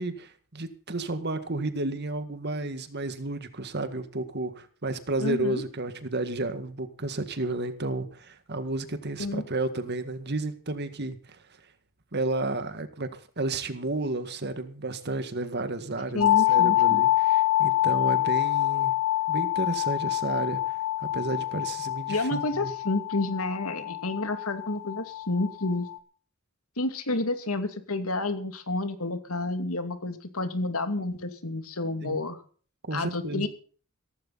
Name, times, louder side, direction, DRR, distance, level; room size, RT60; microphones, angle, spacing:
voice 1, 0.0-11.4 12.1-18.9 19.3-22.7 32.0-32.2 32.9-33.5, right 2 dB, 50° right, 10 dB, 1.9 m, -32 dB
voice 2, 5.2-5.6 9.2-9.4 16.1-17.0 22.1-25.9 26.8-32.4 32.9-33.5, left 2 dB, 90° left, 8 dB, 2.5 m, -30 dB
sound 1, 16.2-26.0, left 15 dB, 70° left, 2.2 m, -26 dB
16.5 x 15.0 x 4.1 m, 0.42 s
head